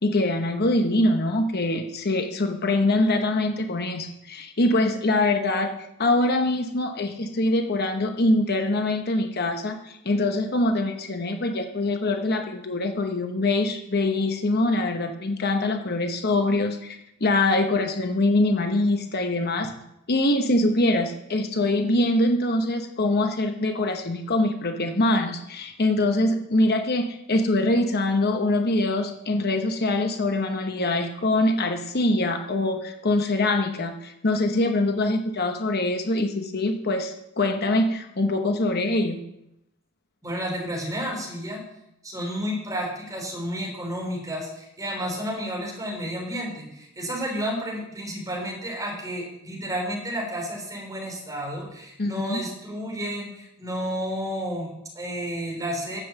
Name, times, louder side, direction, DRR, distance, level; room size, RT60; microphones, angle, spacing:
voice 1, 0.0-5.7 6.0-19.7 20.1-39.2 52.0-52.4, left 2 dB, 50° left, 6 dB, 0.9 m, -24 dB
voice 2, 40.2-41.6 42.0-56.0, equal, 15° right, -1 dB, 3.6 m, -31 dB
9.8 x 7.8 x 7.0 m, 0.85 s
head